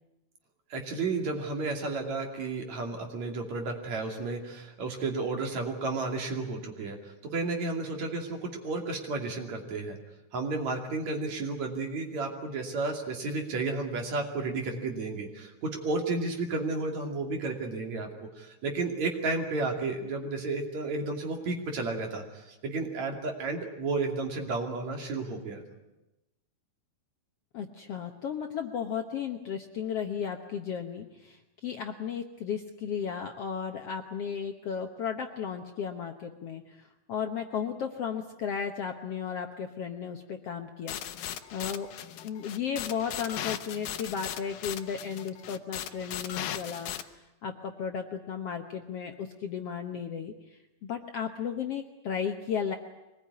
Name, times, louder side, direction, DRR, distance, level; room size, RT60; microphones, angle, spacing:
voice 1, 0.7-10.0 10.3-25.6, right 3 dB, 55° right, 3 dB, 3.8 m, -32 dB
voice 2, 27.5-41.9 42.2-46.9 47.4-52.8, left 7 dB, 60° left, 5 dB, 1.7 m, -35 dB
sound 1, 40.9-47.0, left 11 dB, 80° left, 2.6 m, -38 dB
24.0 x 20.0 x 9.6 m, 0.96 s
omnidirectional pair, 3.9 m